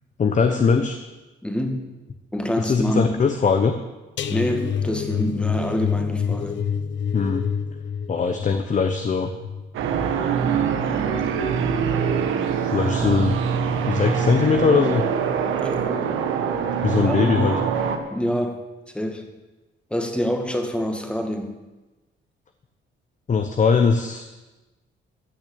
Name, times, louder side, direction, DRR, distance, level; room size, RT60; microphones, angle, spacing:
voice 1, 0.2-1.0 2.6-3.7 7.1-7.4 8.1-9.3 12.7-13.3 13.8-15.0 16.8-17.5 23.3-24.4, left 5 dB, 40° left, 7 dB, 1.0 m, -20 dB
voice 2, 1.4-1.9 2.3-3.1 4.3-6.7 9.9-10.1 12.1-12.3 15.4-16.0 17.0-17.5 18.1-19.2 19.9-21.5, equal, 5° left, 4 dB, 2.0 m, -27 dB
sound 1, 4.2-11.2 11.6-11.9 12.2-12.4, left 7 dB, 65° left, 0.9 m, -28 dB
sound 2, 9.7-18.0, right 6 dB, 90° right, 1.4 m, -24 dB
15.0 x 6.4 x 8.5 m, 1.1 s
cardioid pair, 90°, 20 cm